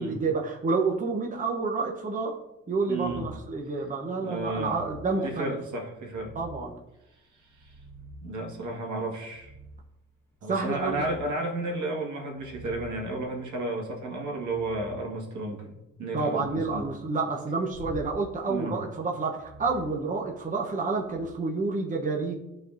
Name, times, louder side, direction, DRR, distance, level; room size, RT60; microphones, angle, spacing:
voice 1, 0.0-2.4 2.7-5.6 6.3-6.7 10.5-11.0 16.1-22.3, right 3 dB, 25° right, 0 dB, 0.9 m, -29 dB
voice 2, 2.9-3.2 4.2-4.7 5.2-6.3 7.3-7.8 8.2-9.5 10.4-16.9 18.5-18.8, right 2 dB, 75° right, 0 dB, 1.8 m, -33 dB
sound 1, 3.0-3.6 4.4-5.1 6.1-6.8 7.4-8.4 9.3-9.9 10.4-11.3 12.3-15.0 16.3-16.8 17.7-18.2 19.3-20.6 21.0-21.3, equal, 5° left, 1.4 m, -47 dB
11.0 x 3.9 x 2.7 m, 0.90 s
cardioid pair, 90°, 30 cm